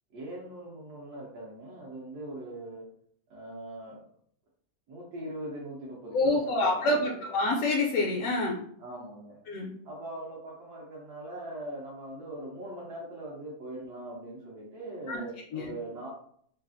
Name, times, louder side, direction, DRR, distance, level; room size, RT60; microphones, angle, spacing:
voice 1, 0.1-2.8 3.3-4.0 4.9-7.2 8.8-9.4 9.8-16.1, right 1 dB, 80° right, -6 dB, 1.3 m, -41 dB
voice 2, 6.1-8.6 9.5-9.7 15.1-15.2 15.5-15.7, left 2 dB, 70° left, -3 dB, 1.0 m, -27 dB
3.3 x 2.3 x 2.5 m, 0.62 s
omnidirectional pair, 1.6 m